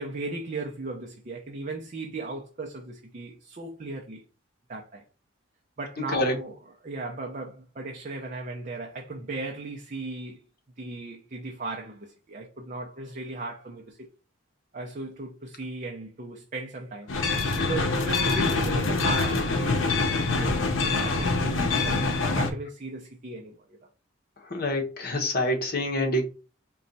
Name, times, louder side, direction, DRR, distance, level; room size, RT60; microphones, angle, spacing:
voice 1, 0.0-4.2 4.7-5.0 5.8-6.6 6.8-10.4 10.8-14.1 14.7-23.8, right 3 dB, 40° right, 0.5 m, -37 dB
sound 1, 17.1-22.5, left 3 dB, 70° left, 0.7 m, -25 dB
voice 2, 24.4-26.3, left 1 dB, 45° left, 0.9 m, -26 dB
4.2 x 2.3 x 3.9 m
head